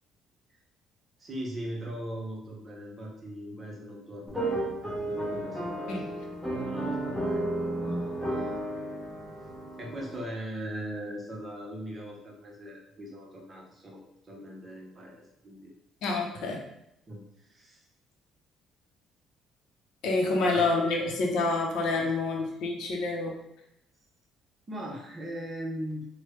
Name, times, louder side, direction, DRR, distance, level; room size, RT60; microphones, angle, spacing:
voice 1, 1.2-6.0 6.5-7.6 8.3-8.5 9.8-15.7 17.1-17.9 20.3-20.7 21.9-22.1 24.7-26.1, equal, 30° right, -1 dB, 0.8 m, -40 dB
sound 1, 4.3-10.2, right 1 dB, ahead, 0.9 m, -33 dB
voice 2, 16.0-16.6 20.0-23.4, left 3 dB, 80° left, 1 dB, 0.7 m, -27 dB
3.2 x 2.1 x 3.2 m, 0.80 s
cardioid pair, 115°, 0 cm